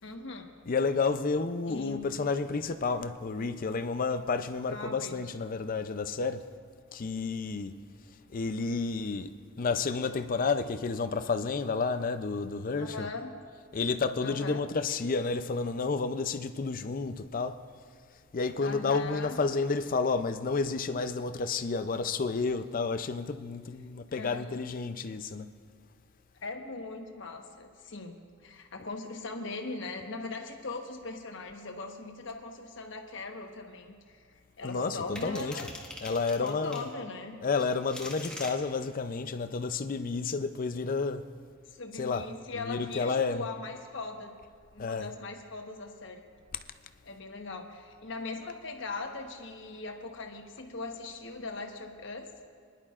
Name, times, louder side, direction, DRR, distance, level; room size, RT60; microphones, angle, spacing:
voice 1, 0.0-0.5 1.7-2.2 4.7-5.2 12.7-13.4 14.2-14.7 18.6-19.4 24.1-24.5 26.4-34.2 34.6-35.7 36.4-37.4 41.7-44.4 44.7-46.2 47.0-52.3, left 3 dB, 65° left, 1.1 m, -40 dB
voice 2, 0.7-6.5 6.9-7.7 8.3-13.1 13.7-17.6 18.3-25.5 34.6-35.7 36.0-36.9 37.4-41.3 41.9-43.5 44.8-45.1, left 4 dB, 45° left, 0.5 m, -31 dB
sound 1, 35.2-36.9 37.6-38.5, left 1 dB, 5° left, 1.3 m, -42 dB
23.5 x 11.0 x 2.5 m
head